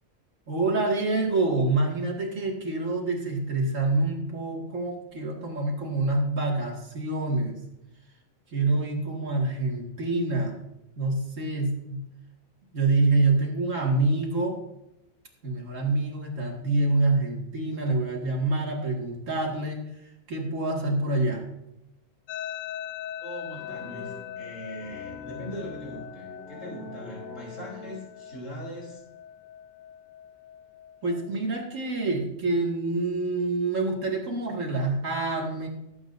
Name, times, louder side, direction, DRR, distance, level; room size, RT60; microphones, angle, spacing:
voice 1, 0.5-7.6 8.5-10.6 11.0-12.0 12.7-14.6 15.4-21.4 31.0-35.7, right 2 dB, 75° right, 0 dB, 2.5 m, -26 dB
sound 1, 22.3-31.3, left 10 dB, 90° left, 1.0 m, -41 dB
voice 2, 23.2-29.0, equal, 75° left, -3 dB, 3.7 m, -41 dB
sound 2, 23.5-28.5, left 2 dB, ahead, 1.8 m, -45 dB
18.0 x 8.5 x 2.6 m, 0.88 s
omnidirectional pair, 1.3 m